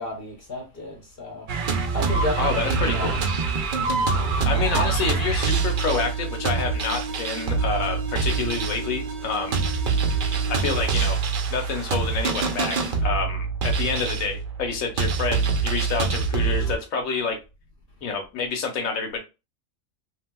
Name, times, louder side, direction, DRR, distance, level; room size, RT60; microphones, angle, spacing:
voice 1, 0.0-1.5 1.9-2.6 2.9-3.2, left 2 dB, 50° left, 0.8 m, -32 dB
sound 1, 1.5-16.8, right 5 dB, 60° right, 0.5 m, -25 dB
voice 2, 2.4-3.1 4.4-9.6 10.5-11.2 11.5-12.8 13.0-17.4 18.0-19.2, left 5 dB, 80° left, 1.2 m, -28 dB
3.2 x 2.7 x 2.2 m
omnidirectional pair, 1.4 m